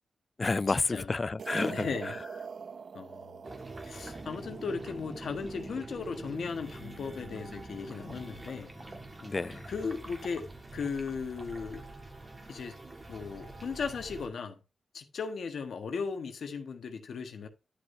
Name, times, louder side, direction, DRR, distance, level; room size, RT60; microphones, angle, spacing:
voice 1, 0.4-2.2 9.2-9.6, left 3 dB, 35° left, 0.3 m, -30 dB
sound 1, 1.4-5.8, right 6 dB, 65° right, 0.6 m, -44 dB
voice 2, 1.7-2.1 2.9-3.4 3.8-8.7 9.7-11.8 12.5-12.7 13.1-14.6 14.9-17.5, left 5 dB, 80° left, 1.4 m, -37 dB
sound 2, 3.4-14.3, right 2 dB, 25° right, 1.8 m, -45 dB
11.5 x 6.7 x 2.7 m
wide cardioid pair, 105°, 0 cm